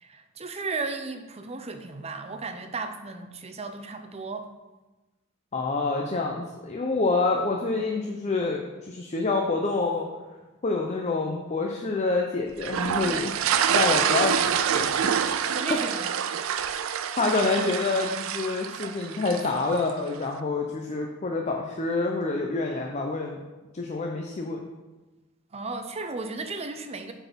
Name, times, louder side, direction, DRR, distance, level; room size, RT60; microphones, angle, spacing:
voice 1, 0.0-4.5 13.0-13.3 15.5-16.2 25.5-27.1, right 3 dB, 30° right, 8 dB, 0.6 m, -35 dB
voice 2, 5.5-8.6 8.9-10.1 10.6-13.3 13.7-15.1 15.7-15.8 17.2-23.4 23.7-24.6, left 3 dB, 35° left, 1 dB, 0.6 m, -27 dB
sound 1, 12.6-19.9, right 8 dB, 85° right, 0.4 m, -26 dB
8.0 x 4.1 x 5.3 m, 1.1 s
head